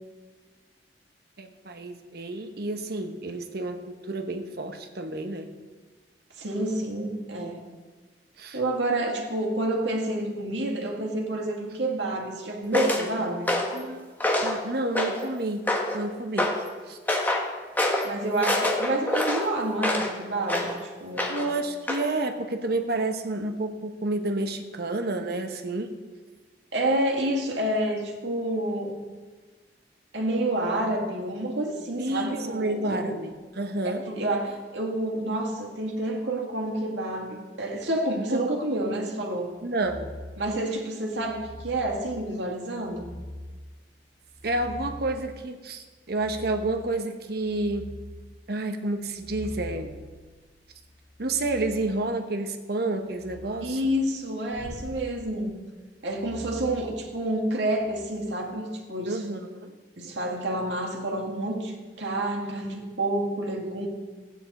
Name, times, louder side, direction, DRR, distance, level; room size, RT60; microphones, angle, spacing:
voice 1, 1.4-5.5 8.4-8.6 13.7-14.1 14.4-15.7 15.9-16.5 16.9-17.0 21.3-25.9 32.0-34.0 38.1-38.4 39.6-40.1 44.4-47.9 48.5-49.9 51.2-53.9 59.1-59.7, right 2 dB, 60° right, 6 dB, 1.0 m, -30 dB
voice 2, 6.4-7.6 8.5-13.5 18.0-20.7 21.0-21.4 26.7-29.0 30.1-33.2 34.1-39.5 40.4-43.1 53.6-55.6 56.0-59.2 60.0-63.9, right 1 dB, 80° right, -1 dB, 2.0 m, -29 dB
sound 1, 12.7-13.0 13.5-13.8 14.2-14.6 14.9-15.3 15.7-16.0 16.4-16.6 17.1-17.5 17.8-18.1 18.4-20.1 20.5-20.7 21.2-21.5 21.9-22.0, left 1 dB, 10° left, 1.2 m, -26 dB
sound 2, 39.8-40.4 41.2-41.9 42.8-43.5 44.2-45.2 46.1-46.7 47.2-48.1 49.0-51.8 53.1-53.6 54.5-55.0 56.1-57.4 57.8-58.1, left 1 dB, 40° left, 3.2 m, -43 dB
15.0 x 9.2 x 4.2 m, 1.3 s
head